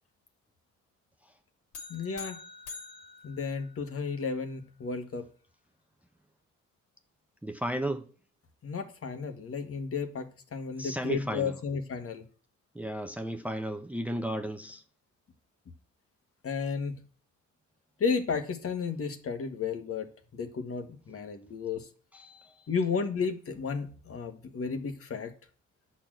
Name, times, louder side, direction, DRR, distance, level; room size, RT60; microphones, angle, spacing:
sound 1, 1.7-4.2, left 4 dB, 80° left, 2.8 m, -46 dB
voice 1, 1.9-2.4 3.2-5.2 8.6-12.2 16.4-17.0 18.0-20.1 20.3-21.9 22.7-25.3, left 5 dB, 50° left, 1.7 m, -33 dB
voice 2, 7.4-8.1 10.8-11.5 12.7-14.8 22.1-22.5, right 1 dB, 5° right, 0.8 m, -34 dB
10.0 x 4.4 x 7.7 m
cardioid pair, 90°, 30 cm